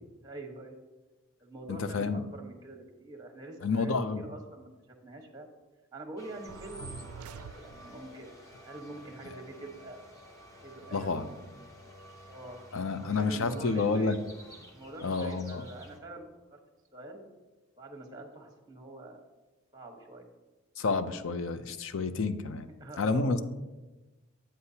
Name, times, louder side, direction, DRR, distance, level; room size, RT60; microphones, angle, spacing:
voice 1, 0.2-0.8 1.4-4.7 5.0-5.5 5.9-8.3 8.6-10.0 10.6-11.8 12.3-12.7 13.0-14.2 14.7-16.3 16.5-16.6 16.9-17.2 17.8-19.3 19.7-20.3 22.8-23.4, right 2 dB, 15° right, 2 dB, 1.1 m, -45 dB
voice 2, 1.7-2.2 3.6-4.2 10.9-11.3 12.7-14.2 15.0-15.7 20.8-22.7 23.0-23.4, left 4 dB, 60° left, 11 dB, 0.5 m, -29 dB
sound 1, 6.2-16.0, equal, 15° left, 1.0 m, -52 dB
sound 2, 6.5-8.2, right 6 dB, 85° right, 0.3 m, -46 dB
9.6 x 8.8 x 2.8 m, 1.2 s
head